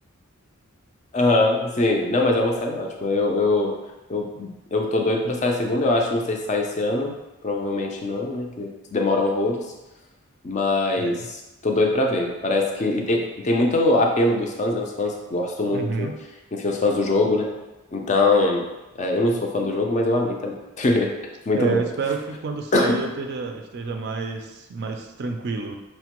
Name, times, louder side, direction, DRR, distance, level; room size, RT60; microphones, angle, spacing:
voice 1, 1.1-3.7 4.1-7.1 7.4-9.7 10.4-16.1 16.5-17.5 17.9-18.6 19.0-21.9 22.7-22.9, left 2 dB, 35° left, 1 dB, 0.4 m, -22 dB
voice 2, 10.9-11.3 15.7-16.2 21.5-25.8, right 4 dB, 50° right, 4 dB, 0.3 m, -29 dB
4.9 x 2.1 x 2.9 m, 1.0 s
head